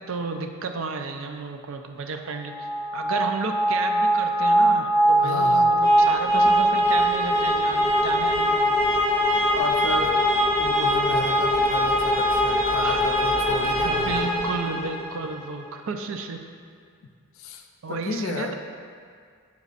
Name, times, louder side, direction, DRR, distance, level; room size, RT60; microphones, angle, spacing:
voice 1, 0.0-2.7 2.9-8.7 12.8-13.0 13.8-16.4 17.8-18.5, right 4 dB, 65° right, 6 dB, 0.4 m, -32 dB
sound 1, 2.5-15.3, equal, 10° right, 1.1 m, -22 dB
voice 2, 5.2-5.8 9.5-10.2 10.5-14.3 17.4-18.5, left 3 dB, 65° left, 4 dB, 0.4 m, -32 dB
8.1 x 6.6 x 2.5 m, 2.1 s
head